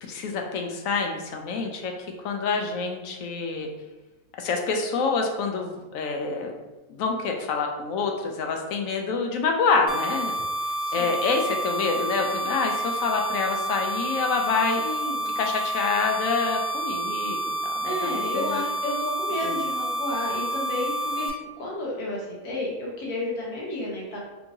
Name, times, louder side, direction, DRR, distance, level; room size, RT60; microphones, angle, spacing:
voice 1, 0.0-1.9 2.2-3.7 4.3-6.5 6.9-10.4 10.9-14.8 15.4-18.6 19.4-19.5, left 4 dB, 70° left, 3 dB, 1.0 m, -27 dB
sound 1, 9.9-21.3, right 1 dB, 30° left, 1.1 m, -29 dB
voice 2, 10.8-11.2 14.8-15.3 17.8-24.2, left 1 dB, 90° left, -4 dB, 1.6 m, -32 dB
4.4 x 2.7 x 2.7 m, 1.1 s
omnidirectional pair, 1.6 m